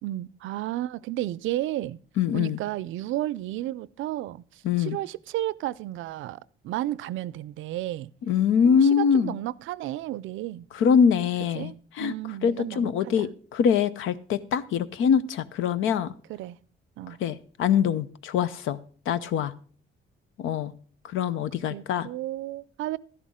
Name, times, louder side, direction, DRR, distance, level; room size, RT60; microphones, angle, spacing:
voice 1, 0.0-2.0 2.3-8.1 8.6-10.7 11.5-13.3 16.3-16.6 17.0-17.2 21.7-23.0, right 14 dB, 85° right, 0.4 m, -33 dB
voice 2, 2.2-2.6 4.6-5.0 8.3-9.3 10.8-11.7 12.0-12.1 12.4-16.1 17.2-18.8 19.1-19.5 20.4-20.7 21.1-22.1, left 7 dB, 80° left, 0.7 m, -23 dB
12.5 x 11.0 x 3.7 m
cardioid pair, 90°, 20 cm